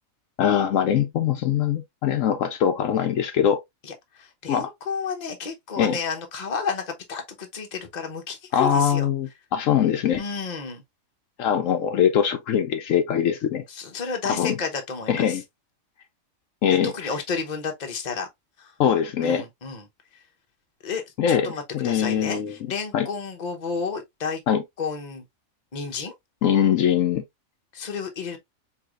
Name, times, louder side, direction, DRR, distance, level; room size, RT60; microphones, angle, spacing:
voice 1, 0.4-3.6 4.5-4.7 5.8-6.0 8.5-10.2 11.4-13.6 14.3-14.5 15.1-15.4 16.6-17.1 18.8-19.4 21.2-21.5 21.7-22.5 22.9-23.1 24.5-24.6 26.4-27.2, left 8 dB, 70° left, 1.0 m, -22 dB
voice 2, 3.8-9.1 10.2-10.8 13.7-15.4 16.8-18.3 18.6-18.7 19.2-19.8 20.8-21.0 21.3-24.4 24.8-25.2 25.7-26.1 27.7-28.4, left 5 dB, 35° left, 0.9 m, -31 dB
4.7 x 3.2 x 2.4 m
omnidirectional pair, 1.4 m